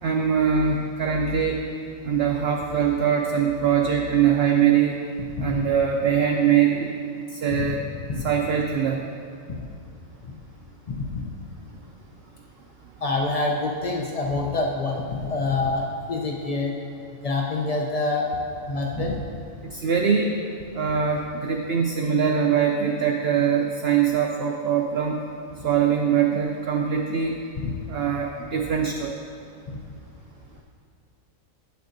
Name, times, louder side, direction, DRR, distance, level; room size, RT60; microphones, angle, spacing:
voice 1, 0.0-1.6 2.0-5.0 5.4-7.0 7.3-7.8 8.2-9.0 19.7-20.4 20.7-25.2 25.6-27.3 27.9-29.2, right 7 dB, 65° right, 1 dB, 0.6 m, -22 dB
voice 2, 10.9-11.3 13.0-16.7 17.2-18.3 18.7-19.2 27.6-27.7, left 3 dB, 70° left, 0 dB, 0.3 m, -26 dB
8.8 x 6.8 x 2.6 m, 2.3 s
omnidirectional pair, 1.4 m